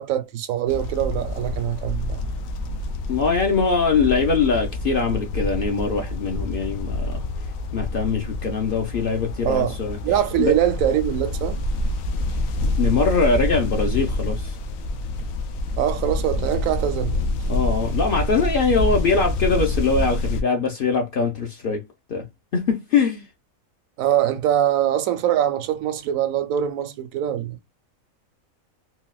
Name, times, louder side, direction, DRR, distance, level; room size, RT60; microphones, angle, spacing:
voice 1, 0.0-2.3 9.4-9.8 10.0-11.6 15.8-17.2 24.0-27.6, right 11 dB, 80° right, 1.0 m, -23 dB
sound 1, 0.7-20.4, left 2 dB, 75° left, 1.0 m, -27 dB
voice 2, 3.1-7.2 7.7-10.0 10.4-10.6 12.8-14.6 17.5-21.8 22.1-22.3 22.5-23.2, left 4 dB, 55° left, 0.7 m, -22 dB
4.1 x 2.2 x 2.2 m
omnidirectional pair, 1.5 m